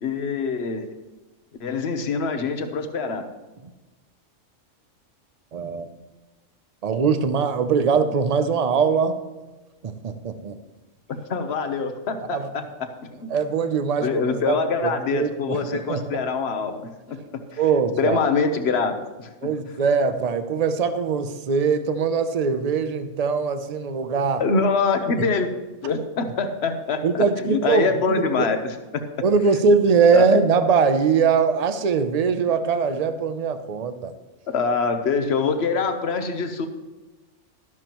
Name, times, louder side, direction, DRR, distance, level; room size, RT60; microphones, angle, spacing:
voice 1, 0.0-0.9 1.6-3.3 11.1-13.3 14.0-17.6 18.0-19.5 24.4-25.5 25.8-29.0 30.1-30.3 34.5-36.7, left 4 dB, 55° left, 7 dB, 1.2 m, -25 dB
voice 2, 5.5-5.9 6.8-9.2 9.8-10.6 12.3-12.5 13.3-14.6 14.8-16.0 17.6-18.2 19.4-24.4 27.0-28.5 29.2-34.1, right 5 dB, 40° right, 10 dB, 0.6 m, -22 dB
12.0 x 12.0 x 3.0 m, 1.1 s
omnidirectional pair, 1.4 m